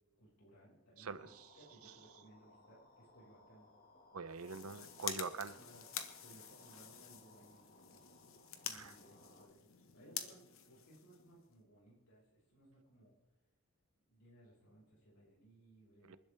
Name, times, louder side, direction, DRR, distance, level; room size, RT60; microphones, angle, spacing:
voice 1, 0.2-3.7 5.5-5.9 6.1-8.1 8.5-13.1 14.1-16.2, right 1 dB, 85° left, 5.8 m, -63 dB
voice 2, 1.0-1.3 4.1-5.6 8.7-8.9 16.1-16.2, right 4 dB, 75° right, 0.8 m, -44 dB
sound 1, 1.1-9.5, left 2 dB, 40° left, 2.0 m, -64 dB
sound 2, 4.3-11.6, left 9 dB, 65° left, 1.4 m, -48 dB
28.0 x 12.0 x 3.6 m
head